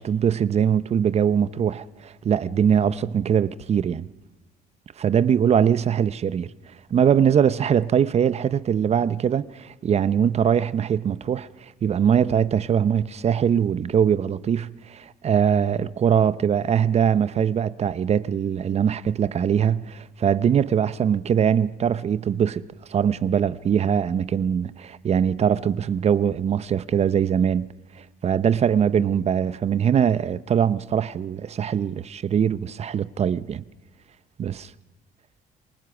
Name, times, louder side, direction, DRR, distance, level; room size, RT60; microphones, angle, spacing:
voice 1, 0.0-4.1 5.0-6.5 6.9-11.5 11.8-22.6 22.9-27.7 28.2-33.6 34.4-34.7, right 8 dB, 40° right, 0.6 m, -22 dB
28.0 x 19.0 x 6.1 m
cardioid pair, 110°, 17 cm